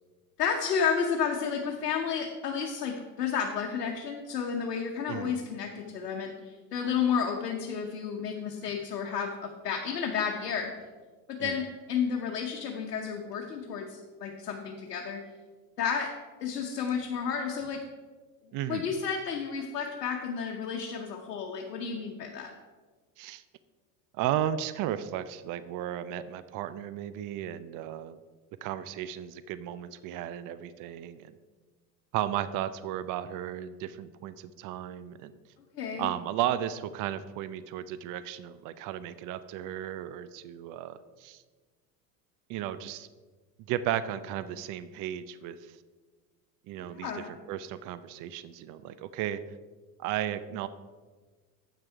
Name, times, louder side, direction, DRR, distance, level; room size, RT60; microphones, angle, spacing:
voice 1, 0.4-10.7 11.3-15.2 15.8-16.1 16.4-17.8 18.7-22.5 35.7-36.1 46.8-47.3, left 6 dB, 85° left, 1 dB, 1.0 m, -31 dB
voice 2, 18.5-18.9 23.2-23.4 24.1-28.2 28.6-31.3 32.1-35.3 36.0-41.4 42.5-43.1 43.7-45.7 46.7-49.4 50.0-50.7, right 11 dB, 45° right, 14 dB, 0.5 m, -34 dB
8.6 x 6.1 x 4.5 m, 1.4 s
hypercardioid pair, 85°, 47 cm